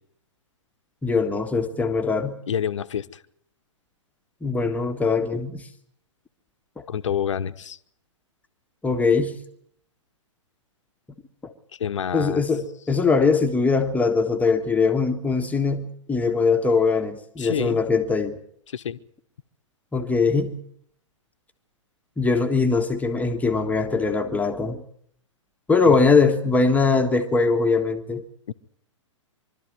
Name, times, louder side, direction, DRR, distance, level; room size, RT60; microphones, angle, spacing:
voice 1, 1.0-2.4 4.4-5.7 6.8-6.9 8.8-9.4 11.4-11.5 12.1-18.4 19.9-20.6 22.2-24.8 25.7-28.2, left 4 dB, 10° left, 1.5 m, -21 dB
voice 2, 2.5-3.1 6.9-7.8 11.8-12.4 17.4-17.8 18.7-19.0 25.9-26.0 28.5-28.6, left 8 dB, 70° left, 1.1 m, -27 dB
24.5 x 13.0 x 9.5 m
figure-of-eight pair, 115°, 16 cm